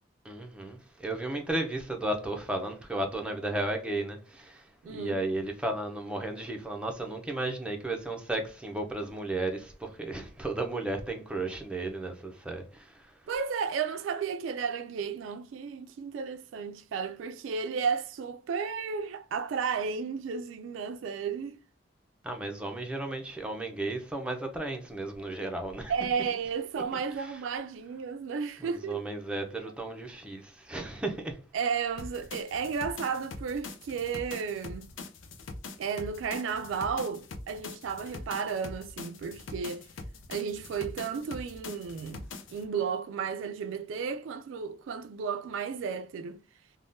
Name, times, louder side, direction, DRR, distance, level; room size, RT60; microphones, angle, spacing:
voice 1, 0.2-13.1 22.2-25.9 26.9-27.3 28.6-31.4, right 2 dB, 5° right, 0.5 m, -34 dB
voice 2, 4.8-5.2 13.3-21.6 25.9-29.0 31.5-34.9 35.8-39.8 40.3-42.2 42.5-46.4, right 6 dB, 80° right, 0.3 m, -33 dB
sound 1, 32.0-42.6, left 3 dB, 90° left, 0.5 m, -43 dB
3.5 x 2.1 x 2.5 m
head